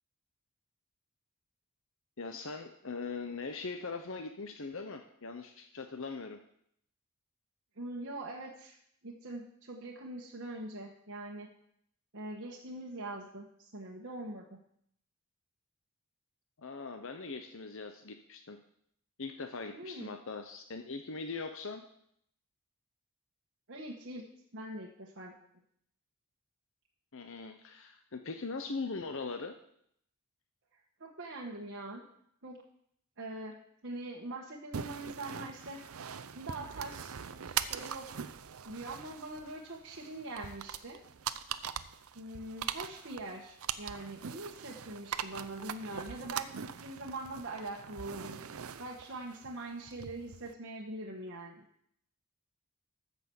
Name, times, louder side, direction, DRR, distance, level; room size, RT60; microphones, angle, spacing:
voice 1, 2.2-6.4 16.6-18.6 19.2-21.8 27.1-29.5, left 4 dB, 65° left, 6 dB, 0.9 m, -41 dB
voice 2, 7.8-8.8 9.0-11.5 12.1-14.6 19.7-20.1 23.7-24.2 24.5-25.3 31.0-32.0 32.4-32.6 33.2-35.8 36.3-38.1 38.6-41.0 42.1-48.4 48.8-51.6, right 2 dB, 55° right, -2 dB, 1.4 m, -43 dB
sound 1, 34.7-50.5, right 8 dB, 75° right, 0.6 m, -42 dB
14.0 x 6.1 x 7.0 m, 0.70 s
head